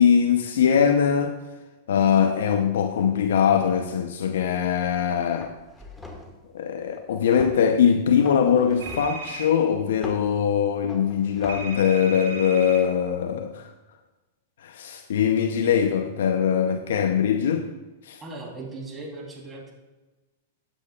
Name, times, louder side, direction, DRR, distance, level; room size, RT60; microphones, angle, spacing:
voice 1, 0.0-1.4 1.9-5.5 6.5-13.7 14.6-17.7 18.0-18.2, left 8 dB, 75° left, 0.7 m, -22 dB
sound 1, 4.8-5.0 5.4-6.4 7.4-7.7 8.3-9.2 10.0-10.3 10.9-11.5, left 2 dB, 10° left, 1.5 m, -41 dB
sound 2, 8.8-9.5 11.5-12.8, right 4 dB, 90° right, 2.3 m, -36 dB
voice 2, 18.2-19.7, right 2 dB, 20° right, 3.3 m, -38 dB
15.0 x 8.9 x 2.4 m
hypercardioid pair, 120°, 0 cm